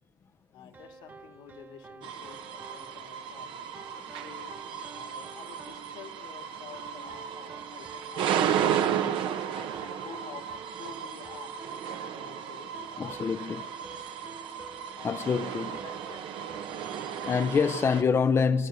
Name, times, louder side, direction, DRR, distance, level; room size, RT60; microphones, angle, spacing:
voice 1, 0.5-3.5 4.1-4.5 4.9-11.9 12.1-13.6 13.9-14.4 14.9-17.3, left 8 dB, 80° left, 2.4 m, -50 dB
sound 1, 0.7-18.0, right 4 dB, 25° right, 1.6 m, -50 dB
sound 2, 2.0-18.0, right 9 dB, 75° right, 1.5 m, -34 dB
voice 2, 13.0-13.7 15.0-15.8 16.9-18.7, left 6 dB, 30° left, 0.7 m, -26 dB
29.5 x 14.0 x 7.8 m
cardioid pair, 125°, 8 cm